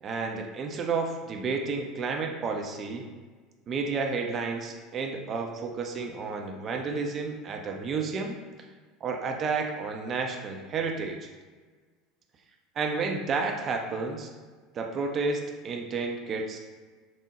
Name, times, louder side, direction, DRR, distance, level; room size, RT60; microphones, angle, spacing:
voice 1, 0.0-3.1 3.7-8.4 9.0-11.3 12.8-14.3 14.7-16.6, right 4 dB, 40° right, 3 dB, 0.4 m, -31 dB
3.5 x 2.0 x 3.0 m, 1.4 s
figure-of-eight pair, 75°, 0 cm